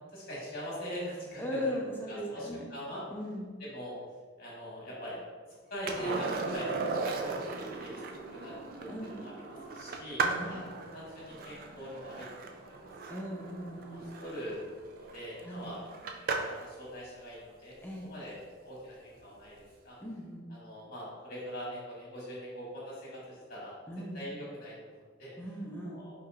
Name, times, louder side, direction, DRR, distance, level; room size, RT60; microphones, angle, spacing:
voice 1, 0.1-1.8 2.1-3.0 3.6-4.0 4.4-5.2 5.7-7.5 7.8-7.9 8.3-8.9 9.2-10.6 10.9-12.9 13.8-14.6 15.0-15.8 16.4-17.7 18.0-18.4 18.6-20.0 20.5-23.7 24.1-24.7 25.2-25.3 25.8-26.1, equal, 50° left, -6 dB, 1.4 m, -42 dB
voice 2, 1.4-2.6 3.1-3.5 8.9-9.3 10.2-10.7 13.1-14.0 15.4-15.7 17.8-18.1 20.0-20.5 23.9-24.3 25.4-26.0, equal, 10° left, -2 dB, 0.5 m, -38 dB
Skateboard, 5.9-16.7 19.3-19.4, right 4 dB, 45° right, 0.3 m, -37 dB
4.8 x 2.8 x 2.4 m, 1.5 s
head